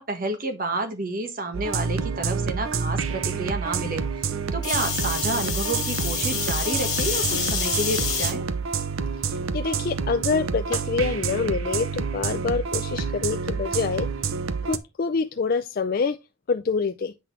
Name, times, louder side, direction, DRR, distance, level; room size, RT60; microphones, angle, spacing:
voice 1, 0.0-4.0 4.5-8.4, right 2 dB, 40° right, 1.4 m, -30 dB
sound 1, 1.5-14.8, right 5 dB, 80° right, 0.7 m, -28 dB
sound 2, 4.6-8.3 9.0-9.4 10.7-10.8, left 6 dB, 20° left, 2.1 m, -27 dB
voice 2, 9.2-14.1 14.6-16.2 16.5-17.1, left 5 dB, 45° left, 0.4 m, -26 dB
8.1 x 5.9 x 3.1 m
head